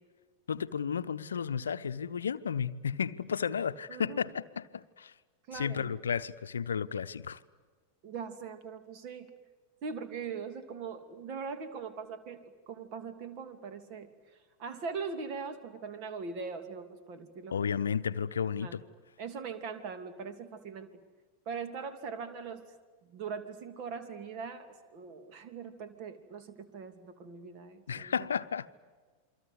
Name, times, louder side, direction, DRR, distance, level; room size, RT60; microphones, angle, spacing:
voice 1, 0.5-5.1 5.5-7.4 17.5-18.8 27.9-28.7, left 7 dB, 70° left, 0.8 m, -33 dB
voice 2, 3.9-4.2 5.5-5.9 8.0-9.3 9.8-14.1 14.6-17.5 18.6-18.8 19.2-20.9 21.5-22.6 23.0-28.1, right 5 dB, 40° right, 2.9 m, -41 dB
28.5 x 24.0 x 8.3 m
figure-of-eight pair, 90°, 0 cm